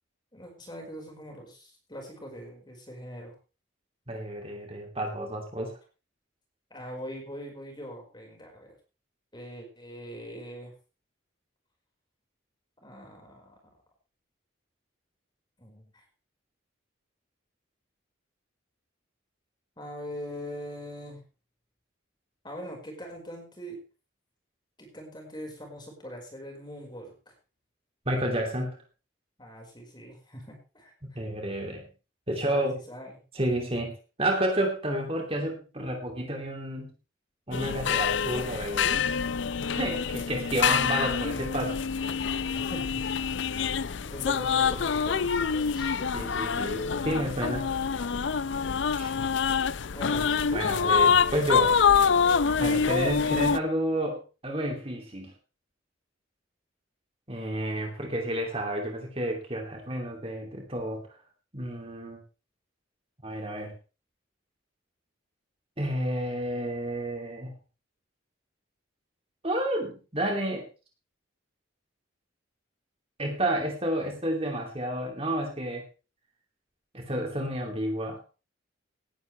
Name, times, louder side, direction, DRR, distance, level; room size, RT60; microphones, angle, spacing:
voice 1, 0.3-3.3 6.7-8.7 9.3-10.7 12.8-13.6 15.6-15.8 19.8-21.2 22.4-23.8 24.8-27.1 29.4-31.2 32.3-33.2 42.7-43.0 44.0-45.9 49.9-50.8, equal, 20° left, 1 dB, 5.1 m, -42 dB
voice 2, 4.1-5.7 28.1-28.8 31.0-31.8 32.3-32.7 33.3-33.9 34.2-36.9 37.5-39.0 39.7-41.8 46.1-47.7 49.0-49.1 50.5-51.7 52.6-55.3 57.3-61.0 61.5-62.2 63.2-63.7 65.8-67.5 69.4-70.6 73.2-75.8 76.9-78.2, right 1 dB, 30° right, 2 dB, 2.9 m, -30 dB
sound 1, 37.5-53.6, left 6 dB, 65° left, 0.5 m, -26 dB
18.5 x 11.0 x 3.4 m, 0.33 s
head